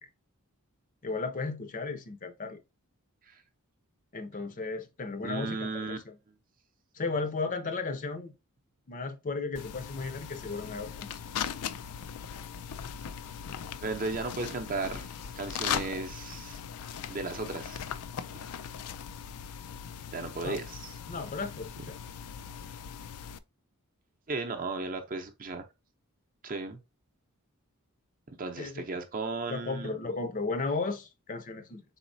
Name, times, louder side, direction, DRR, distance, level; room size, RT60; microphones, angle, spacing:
voice 1, 1.0-2.6 4.1-6.2 6.9-8.3 8.9-11.1 20.4-20.6 21.1-22.0 28.6-28.8 29.5-31.8, left 3 dB, 35° left, 0.5 m, -35 dB
voice 2, 5.2-6.0 13.8-16.6 17.1-17.8 20.1-20.9 24.3-25.7 26.4-26.8 28.3-29.9, right 3 dB, 40° right, 0.6 m, -35 dB
getting a pen out of bag, 9.6-23.4, left 8 dB, 85° left, 0.4 m, -39 dB
4.1 x 3.9 x 2.6 m
head